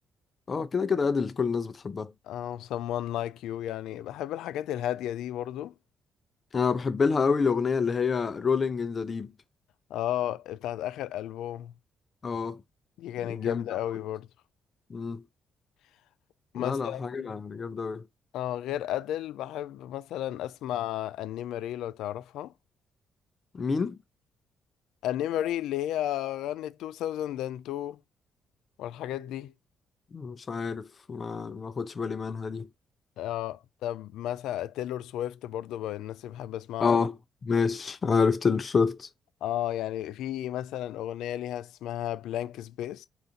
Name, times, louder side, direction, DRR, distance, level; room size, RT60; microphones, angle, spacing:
voice 1, 0.5-2.1 6.5-9.3 12.2-12.6 13.2-13.6 14.9-15.2 16.5-18.0 23.5-24.0 30.1-32.7 36.8-37.1 37.4-39.1, left 5 dB, 40° left, 0.5 m, -27 dB
voice 2, 2.2-5.7 9.9-11.7 13.0-14.3 16.5-17.3 18.3-22.5 25.0-28.0 28.8-29.5 33.2-37.0 39.4-43.1, left 12 dB, 85° left, 0.3 m, -33 dB
4.0 x 2.6 x 3.6 m
cardioid pair, 90°, 0 cm